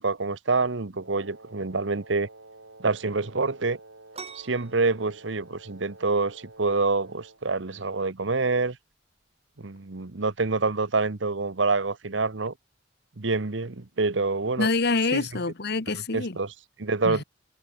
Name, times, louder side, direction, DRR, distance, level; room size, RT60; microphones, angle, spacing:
voice 1, 0.0-2.3 2.8-3.8 4.3-8.8 9.6-12.5 13.2-14.7 15.1-15.2 16.1-17.2, right 3 dB, 70° right, 1.1 m, -26 dB
Wind instrument woodwind instrument, 1.0-7.5, right 2 dB, 90° right, 7.5 m, -50 dB
sound 1, 4.1-11.5, right 5 dB, 35° right, 6.5 m, -51 dB
voice 2, 14.6-16.4 17.0-17.2, left 3 dB, 60° left, 1.5 m, -26 dB
head